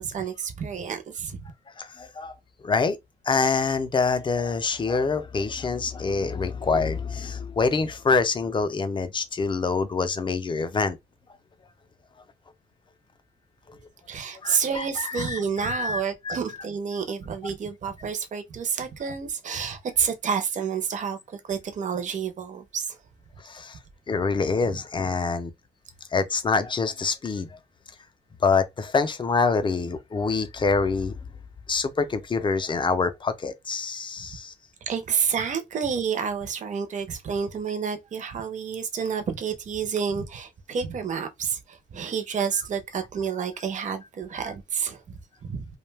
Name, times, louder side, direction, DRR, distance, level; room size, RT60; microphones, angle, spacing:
voice 1, 0.0-1.4 14.1-23.0 24.6-24.7 34.9-45.2 45.5-45.6, right 6 dB, 40° right, 0.5 m, -29 dB
voice 2, 1.8-2.3 2.6-3.0 3.3-11.0 13.7-13.8 14.4-16.4 23.4-23.8 24.1-25.5 26.1-27.6 28.4-31.1 31.7-34.5 44.4-44.5, left 4 dB, 25° left, 0.4 m, -26 dB
2.5 x 2.1 x 3.2 m
cardioid pair, 135°, 20 cm